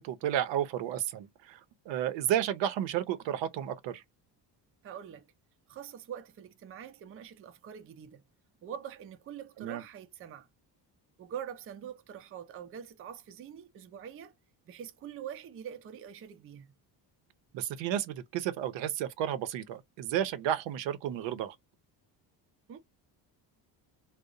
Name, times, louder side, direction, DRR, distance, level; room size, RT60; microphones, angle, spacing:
voice 1, 0.0-1.6 1.9-4.0 9.6-9.8 17.5-21.6, right 11 dB, 80° right, 0.6 m, -32 dB
voice 2, 4.8-5.3 5.7-8.2 8.6-10.5 11.2-14.3 14.7-16.7 22.7-22.8, right 9 dB, 35° right, 0.4 m, -44 dB
2.7 x 2.0 x 2.4 m
cardioid pair, 130°, 43 cm